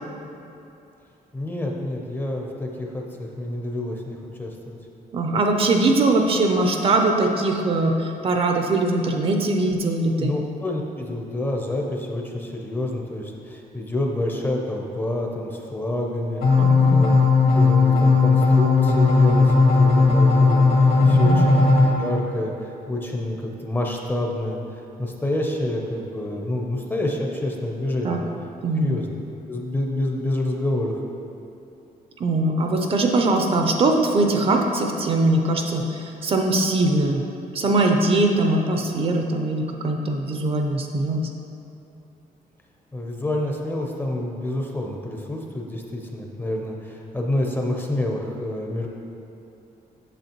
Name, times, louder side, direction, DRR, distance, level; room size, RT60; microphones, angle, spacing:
voice 1, 1.3-4.8 10.2-17.1 17.5-24.6 25.0-28.2 28.8-29.1 29.5-31.0 42.9-48.9, left 1 dB, 15° left, 0 dB, 0.5 m, -28 dB
voice 2, 5.1-10.4 16.6-17.0 21.0-21.6 28.0-28.2 28.6-29.0 32.2-37.2 37.5-41.3, right 2 dB, 35° right, 3 dB, 0.5 m, -21 dB
sound 1, 16.4-21.9, left 3 dB, 75° left, 1.6 m, -16 dB
8.0 x 6.9 x 2.9 m, 2.7 s
cardioid pair, 170°, 16 cm